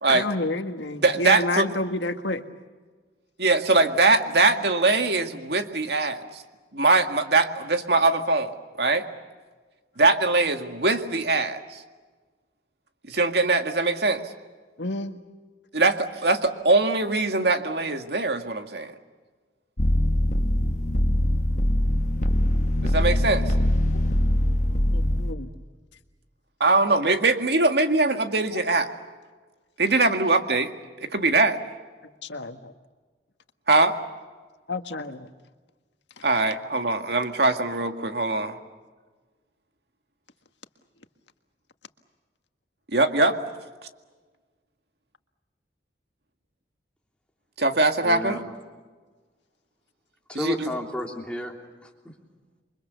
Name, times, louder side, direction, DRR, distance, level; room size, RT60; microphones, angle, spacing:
voice 1, 0.1-2.4 14.8-15.2 24.9-25.5 32.2-32.7 34.7-35.3, left 2 dB, 85° left, 7 dB, 1.7 m, -29 dB
voice 2, 1.0-1.7 3.4-6.4 6.7-8.5 8.8-9.1 10.0-11.8 13.1-14.2 15.7-18.9 22.8-23.5 26.6-28.9 29.8-30.7 31.0-31.6 33.7-34.0 36.2-38.6 42.9-43.4 47.6-48.4 50.3-50.7, right 3 dB, 65° right, 6 dB, 2.0 m, -22 dB
sound 1, 19.8-25.3, left 1 dB, 45° left, 1.4 m, -22 dB
voice 3, 48.0-48.5 50.3-51.5 51.8-52.1, left 1 dB, 5° left, 0 dB, 3.1 m, -33 dB
28.5 x 24.5 x 7.0 m, 1.4 s
head